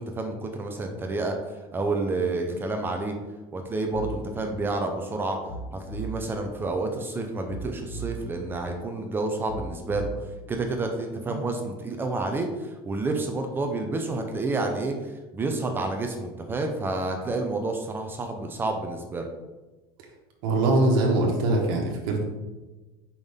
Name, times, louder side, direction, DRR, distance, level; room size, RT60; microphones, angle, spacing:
voice 1, 0.0-1.4 1.7-3.1 3.5-5.4 5.7-10.1 10.5-19.3, right 2 dB, 15° right, 3 dB, 0.7 m, -29 dB
sound 1, 3.9-4.3 5.5-6.3 7.5-8.3 9.5-10.3, right 3 dB, 35° left, 1.2 m, -36 dB
voice 2, 20.4-22.3, right 2 dB, 70° right, -1 dB, 1.4 m, -22 dB
6.1 x 5.4 x 3.6 m, 1.2 s
cardioid pair, 150°, 12 cm